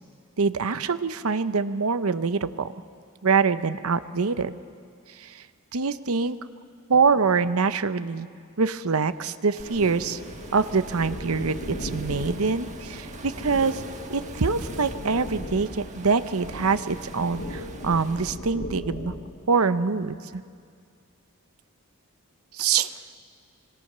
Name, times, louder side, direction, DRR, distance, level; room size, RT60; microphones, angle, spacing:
voice 1, 0.4-2.7 3.2-4.5 5.2-5.4 5.7-6.4 6.9-8.3 8.6-10.2 10.5-13.8 14.1-19.1 19.5-20.2 22.5-22.9, right 5 dB, 75° right, 13 dB, 0.8 m, -24 dB
sound 1, 9.6-19.3, left 1 dB, 55° left, 2.8 m, -37 dB
Waves surf, 9.6-18.3, right 3 dB, 35° right, 1.5 m, -44 dB
26.5 x 24.0 x 6.7 m, 2.2 s
head